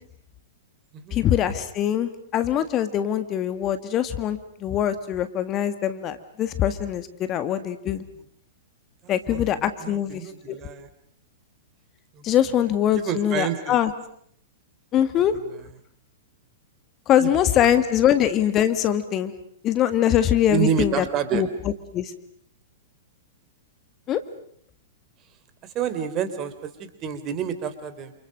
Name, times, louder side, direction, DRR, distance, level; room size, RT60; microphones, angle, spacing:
voice 1, 1.1-8.0 9.1-10.6 12.2-13.9 14.9-15.3 17.1-19.3 19.6-21.0 21.3-21.5 21.9-22.1 24.1-24.2, left 10 dB, 30° left, 11 dB, 1.8 m, -23 dB
voice 2, 8.0-8.3 9.0-10.9 12.1-13.8 15.2-15.7 17.2-18.1 20.5-21.5 25.6-28.1, right 8 dB, 30° right, 11 dB, 3.4 m, -30 dB
28.5 x 28.5 x 6.6 m, 0.66 s
figure-of-eight pair, 105°, 0 cm